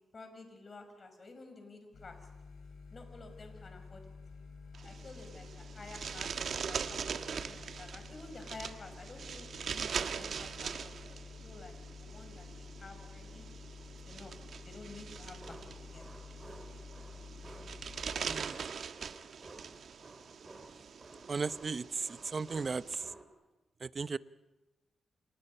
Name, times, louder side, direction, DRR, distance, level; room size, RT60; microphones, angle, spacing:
voice 1, 0.0-2.2 2.9-4.1 4.8-13.5 14.0-14.4 14.7-16.1, left 3 dB, 40° left, 6 dB, 5.7 m, -51 dB
sound 1, 1.9-18.4, left 4 dB, 75° left, 6.2 m, -50 dB
sound 2, 4.7-22.9, right 6 dB, 65° right, 1.3 m, -42 dB
sound 3, 15.4-23.2, right 2 dB, 25° right, 4.3 m, -54 dB
voice 2, 21.3-23.1 23.8-24.2, right 4 dB, 40° right, 15 dB, 0.7 m, -36 dB
29.5 x 27.5 x 5.6 m, 1.1 s
cardioid pair, 100°, 0 cm